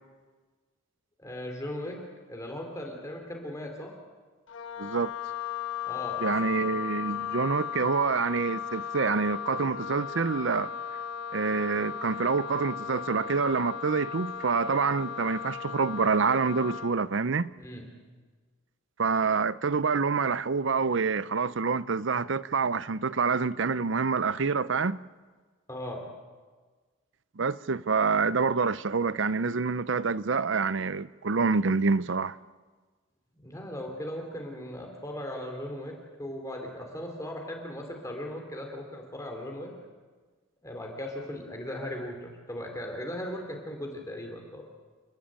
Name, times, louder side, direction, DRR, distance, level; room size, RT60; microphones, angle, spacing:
voice 1, 1.2-2.0 2.3-3.9 5.8-6.6 17.6-17.9 25.7-26.1 33.3-35.9 36.2-39.7 40.6-44.6, left 1 dB, 15° left, 3.3 m, -38 dB
Wind instrument woodwind instrument, 4.5-17.0, left 8 dB, 65° left, 1.2 m, -36 dB
voice 2, 4.8-5.1 6.2-10.7 11.3-17.5 19.0-25.0 27.4-32.3, right 4 dB, 60° right, 0.6 m, -27 dB
29.5 x 13.0 x 8.9 m
head